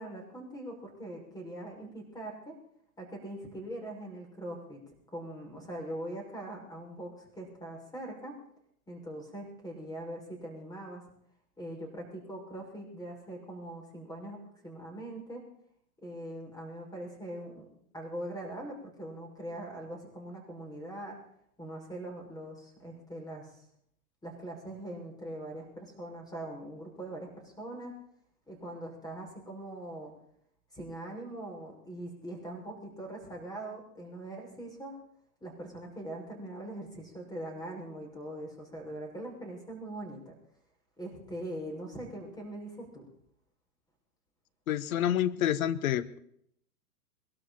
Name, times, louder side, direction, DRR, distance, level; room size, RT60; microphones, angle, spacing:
voice 1, 0.0-2.6 3.0-4.8 5.1-8.4 8.9-11.0 11.6-15.4 16.0-17.7 17.9-21.2 21.6-23.6 24.2-28.0 28.5-30.1 30.7-35.0 35.4-40.3 41.0-43.1, right 1 dB, 10° left, 1 dB, 6.1 m, -42 dB
voice 2, 44.7-46.2, left 11 dB, 60° left, 14 dB, 1.2 m, -28 dB
22.5 x 13.0 x 4.3 m, 0.69 s
hypercardioid pair, 115°, 46 cm